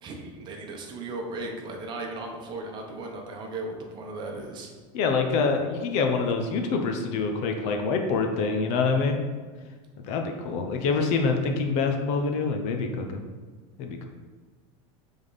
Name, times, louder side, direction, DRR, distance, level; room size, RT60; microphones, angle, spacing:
voice 1, 0.0-4.7, right 2 dB, 30° right, 2 dB, 0.9 m, -36 dB
voice 2, 4.9-9.2 10.1-13.2 13.8-14.1, left 4 dB, 45° left, 4 dB, 0.7 m, -26 dB
8.7 x 3.6 x 4.0 m, 1.4 s
supercardioid pair, 160°, 16 cm